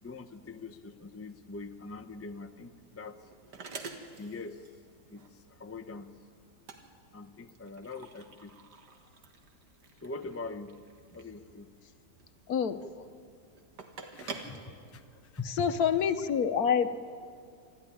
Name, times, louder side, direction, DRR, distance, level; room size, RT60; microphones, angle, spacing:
voice 1, 0.0-3.2 4.2-4.7 5.1-6.1 7.1-8.6 10.0-10.7 11.1-11.7 14.1-15.7, left 3 dB, 25° left, 8 dB, 0.3 m, -43 dB
sound 1, 2.4-15.6, right 4 dB, 70° right, 2.2 m, -48 dB
voice 2, 12.5-13.0 15.5-17.0, left 7 dB, 65° left, 11 dB, 1.2 m, -27 dB
25.0 x 14.0 x 10.0 m, 2.3 s
omnidirectional pair, 1.8 m